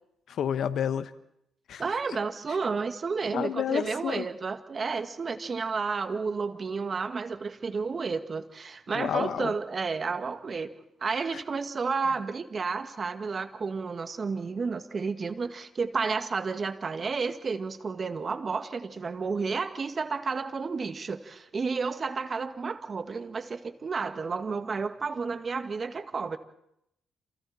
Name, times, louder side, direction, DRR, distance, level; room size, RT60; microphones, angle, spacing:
voice 1, 0.3-1.1 1.7-1.8 3.3-4.2 8.9-9.5, left 9 dB, 65° left, 12 dB, 1.3 m, -29 dB
voice 2, 1.8-10.7 11.0-26.4, right 4 dB, 40° right, 9 dB, 1.9 m, -31 dB
28.5 x 28.5 x 4.3 m, 0.77 s
cardioid pair, 90°, 0 cm